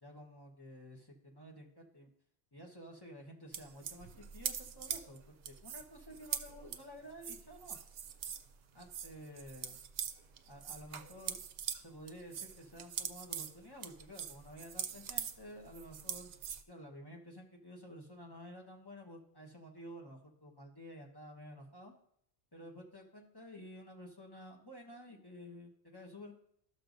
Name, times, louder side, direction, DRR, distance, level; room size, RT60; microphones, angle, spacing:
voice 1, 0.0-2.1 2.5-7.8 8.7-9.8 10.5-11.4 11.8-16.3 16.7-21.9 22.5-26.4, equal, 25° left, 0 dB, 1.3 m, -52 dB
sound 1, 3.5-8.5 8.8-11.8 12.1-16.6, right 8 dB, 70° right, 0.8 m, -42 dB
12.5 x 6.7 x 2.6 m, 0.69 s
omnidirectional pair, 1.1 m